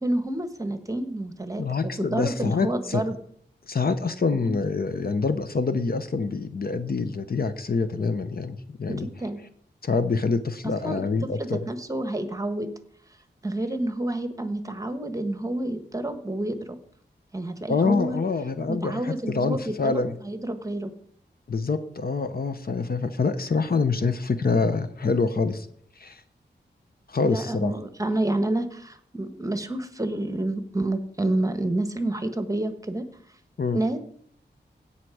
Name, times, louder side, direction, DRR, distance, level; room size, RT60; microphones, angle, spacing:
voice 1, 0.0-3.2 4.3-4.5 8.9-9.4 10.8-11.0 11.4-12.7 13.4-16.7 17.3-18.2 18.7-20.9 27.2-33.0 33.7-34.0, right 1 dB, 20° right, 9 dB, 1.2 m, -29 dB
voice 2, 1.6-3.0 3.7-9.1 9.8-11.7 17.7-20.1 21.5-25.7 26.0-26.2 27.1-27.7 33.6-33.8, left 4 dB, 55° left, 10 dB, 0.9 m, -26 dB
17.0 x 5.8 x 4.9 m, 0.64 s
wide cardioid pair, 80°, 19 cm